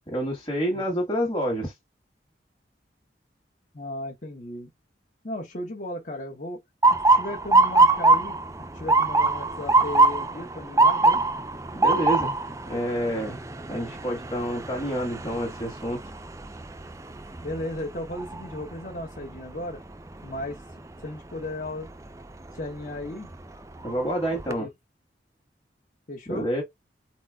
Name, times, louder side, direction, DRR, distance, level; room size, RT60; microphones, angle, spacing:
voice 1, 0.1-1.8 11.7-12.4 12.6-13.4 13.7-16.0 23.8-24.7 26.3-26.6, equal, 25° left, 1.6 m, -28 dB
voice 2, 3.7-4.7 5.2-6.6 6.9-11.2 17.4-19.8 20.2-20.6 21.0-21.9 22.5-23.3 24.3-24.7 26.1-26.5, left 1 dB, 45° left, 1.3 m, -35 dB
Motor vehicle (road) / Siren, 6.8-18.7 19.2-19.6 20.4-20.7 22.6-22.8 23.3-23.4 23.8-24.5, right 3 dB, 15° right, 0.5 m, -23 dB
4.3 x 4.2 x 2.3 m
head